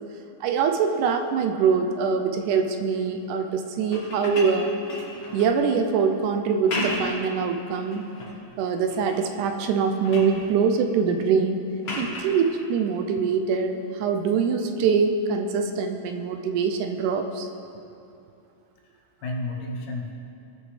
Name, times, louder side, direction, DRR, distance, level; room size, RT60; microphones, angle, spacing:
voice 1, 0.4-4.7 5.3-8.0 8.6-11.6 12.0-17.5, right 5 dB, 80° right, 5 dB, 2.1 m, -24 dB
sound 1, 3.8-5.6 6.5-7.2 7.7-8.4 8.9-9.3 9.7-10.4 11.8-12.4 14.1-14.3, left 1 dB, 50° left, 1.4 m, -34 dB
voice 2, 18.8-20.1, left 2 dB, 80° left, 0 dB, 2.5 m, -33 dB
18.0 x 6.3 x 3.2 m, 2.7 s
omnidirectional pair, 3.6 m